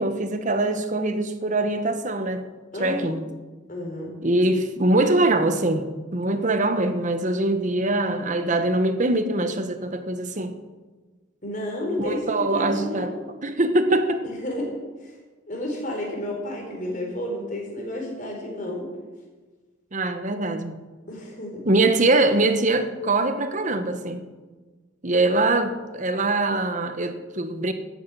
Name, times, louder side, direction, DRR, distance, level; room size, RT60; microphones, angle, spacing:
voice 1, 0.0-2.4 2.8-3.2 4.2-10.6 12.0-13.1 13.4-14.2 19.9-20.8 21.7-24.3 25.0-27.7, right 2 dB, 35° right, 1.1 m, -23 dB
voice 2, 2.7-3.2 3.7-4.1 11.4-13.2 14.2-14.7 15.0-15.2 15.5-18.9 21.1-21.7, left 1 dB, 40° left, 4.4 m, -31 dB
13.5 x 8.7 x 8.5 m
head